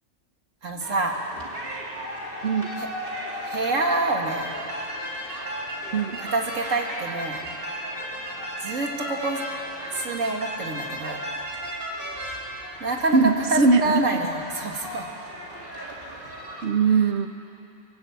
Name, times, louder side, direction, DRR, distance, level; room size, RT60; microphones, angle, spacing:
voice 1, 0.6-1.2 2.8-2.9 3.3-4.5 6.2-7.4 8.6-9.4 9.9-11.2 12.8-13.2 13.5-15.1, right 2 dB, 85° right, 2 dB, 2.4 m, -27 dB
sound 1, 0.8-16.6, equal, 45° right, 3.2 m, -35 dB
voice 2, 13.1-14.0 16.6-17.3, right 4 dB, 60° right, 8 dB, 1.3 m, -20 dB
26.5 x 17.5 x 8.2 m, 2.8 s
omnidirectional pair, 1.3 m